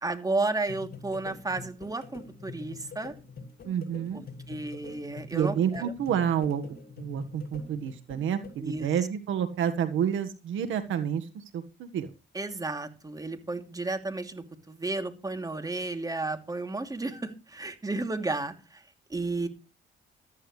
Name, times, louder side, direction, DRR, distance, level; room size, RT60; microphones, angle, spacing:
voice 1, 0.0-3.1 4.1-5.9 8.6-8.9 12.3-18.8 19.1-19.5, right 2 dB, 20° right, 6 dB, 2.8 m, -33 dB
sound 1, 0.7-8.6, left 4 dB, 50° left, 7.5 m, -45 dB
voice 2, 3.6-4.2 5.3-12.1, right 8 dB, 80° right, 9 dB, 1.6 m, -29 dB
14.5 x 14.0 x 3.3 m, 0.29 s
cardioid pair, 90°, 20 cm